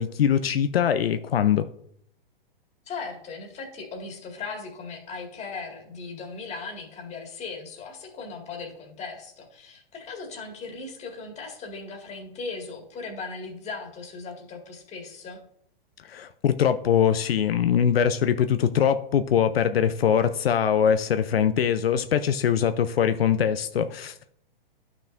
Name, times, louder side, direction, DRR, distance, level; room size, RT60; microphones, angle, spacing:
voice 1, 0.0-1.7 16.1-24.3, left 8 dB, 80° left, 10 dB, 0.5 m, -22 dB
voice 2, 2.9-15.4, left 4 dB, 20° left, 0 dB, 2.0 m, -38 dB
11.5 x 6.0 x 2.5 m, 0.69 s
hypercardioid pair, 120°, 29 cm